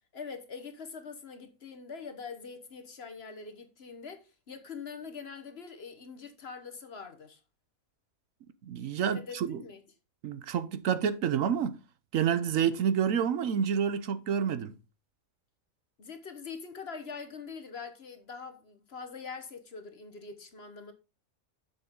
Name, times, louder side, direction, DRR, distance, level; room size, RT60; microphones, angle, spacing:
voice 1, 0.1-7.4 9.0-9.8 16.0-20.9, left 5 dB, 50° left, 1.3 m, -43 dB
voice 2, 8.6-9.6 10.2-11.8 12.1-14.7, right 8 dB, 70° right, 1.1 m, -28 dB
7.3 x 7.1 x 3.6 m
omnidirectional pair, 1.5 m